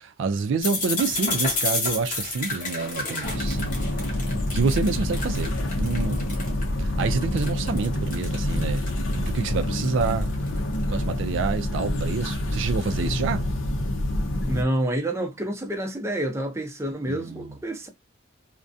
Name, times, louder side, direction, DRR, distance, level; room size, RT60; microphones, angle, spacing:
voice 1, 0.0-3.7 4.0-4.2 4.5-6.3 6.8-8.9 9.1-10.3 10.9-13.4 17.1-17.5, right 4 dB, 65° right, 0.3 m, -27 dB
sound 1, 0.6-6.6 7.0-10.8, left 3 dB, 40° left, 0.9 m, -30 dB
sound 2, 3.2-14.6, left 1 dB, 80° left, 0.6 m, -27 dB
voice 2, 14.5-17.9, right 1 dB, 15° right, 0.5 m, -28 dB
2.3 x 2.1 x 2.5 m
head